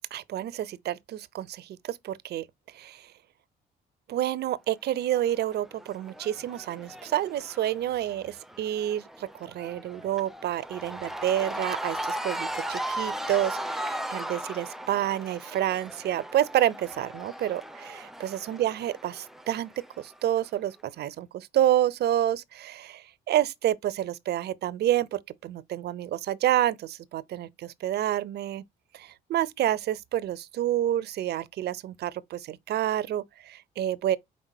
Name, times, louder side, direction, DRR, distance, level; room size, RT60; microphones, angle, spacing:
voice 1, 0.1-2.4 2.7-3.1 4.1-19.7 20.0-28.6 28.9-34.2, right 12 dB, 55° right, 0.4 m, -29 dB
Cheering / Crowd, 5.1-20.4, right 1 dB, ahead, 0.4 m, -37 dB
5.2 x 3.4 x 2.7 m
supercardioid pair, 60°, 20 cm